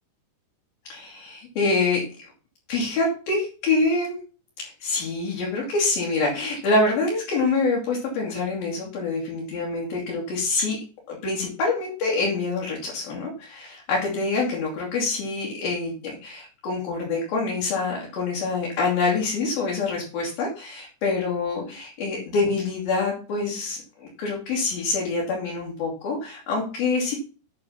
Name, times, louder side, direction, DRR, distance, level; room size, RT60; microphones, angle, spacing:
voice 1, 0.9-2.3 2.7-4.2 4.6-10.8 11.1-27.2, left 3 dB, 55° left, -2 dB, 4.1 m, -26 dB
8.6 x 6.8 x 5.8 m, 0.37 s
omnidirectional pair, 5.4 m